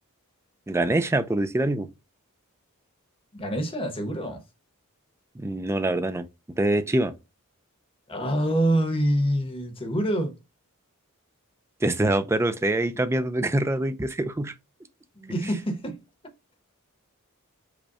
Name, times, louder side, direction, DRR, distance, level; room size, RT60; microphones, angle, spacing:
voice 1, 0.7-1.9 5.4-6.3 6.6-7.1 11.8-14.5 15.4-15.5, right 1 dB, 10° right, 0.4 m, -24 dB
voice 2, 3.3-4.4 8.1-10.4 15.1-16.0, right 1 dB, 25° left, 1.0 m, -26 dB
5.0 x 2.2 x 4.7 m
head